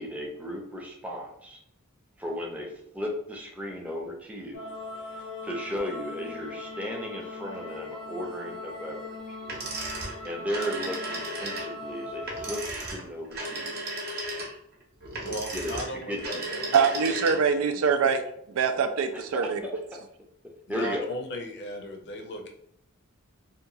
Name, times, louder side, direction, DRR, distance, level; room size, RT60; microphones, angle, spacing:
voice 1, 0.0-1.6 2.2-4.6 5.0-9.4 10.2-13.8 15.5-15.8 16.1-16.4 19.6-19.8 20.7-21.0, left 1 dB, 5° right, 0.5 m, -35 dB
sound 1, 4.5-12.6, left 2 dB, 85° left, 0.8 m, -40 dB
sound 2, 9.4-17.6, right 2 dB, 50° right, 0.8 m, -35 dB
voice 2, 15.2-16.9 17.3-17.4 20.7-22.5, equal, 55° left, 0.5 m, -36 dB
voice 3, 16.7-18.2 18.5-19.6, right 6 dB, 75° right, 0.4 m, -24 dB
2.8 x 2.3 x 2.7 m
head